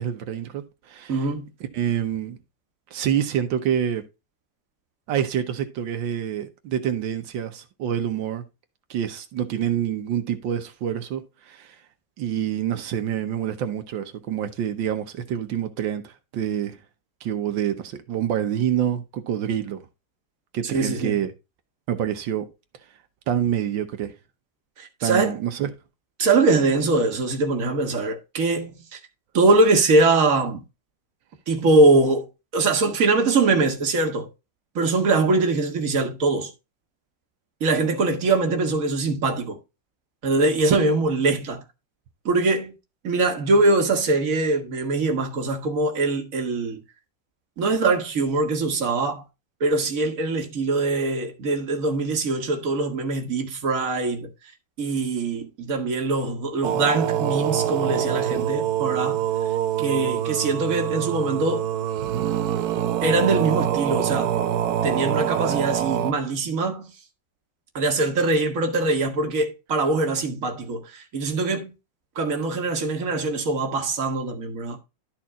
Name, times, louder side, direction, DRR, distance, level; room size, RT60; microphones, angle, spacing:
voice 1, 0.0-1.3 1.7-2.4 2.9-4.0 5.1-8.4 8.9-11.8 12.2-16.8 17.2-19.8 20.5-21.3 21.9-22.5 23.3-24.1 25.0-25.7 40.6-40.8, right 9 dB, 85° right, 1.7 m, -27 dB
voice 2, 1.1-1.5 20.6-21.2 24.8-25.4 26.2-29.0 29.3-30.6 31.5-32.3 32.5-34.3 34.8-36.5 37.6-39.6 40.2-41.6 42.3-42.7 43.0-46.8 47.6-49.2 49.6-54.3 54.8-59.2 59.8-61.7 63.0-64.4 64.8-66.9 67.8-71.7 72.2-74.8, right 3 dB, 50° right, 1.8 m, -22 dB
sound 1, 56.6-66.1, right 10 dB, 65° right, 1.1 m, -25 dB
12.0 x 4.4 x 3.6 m
omnidirectional pair, 2.0 m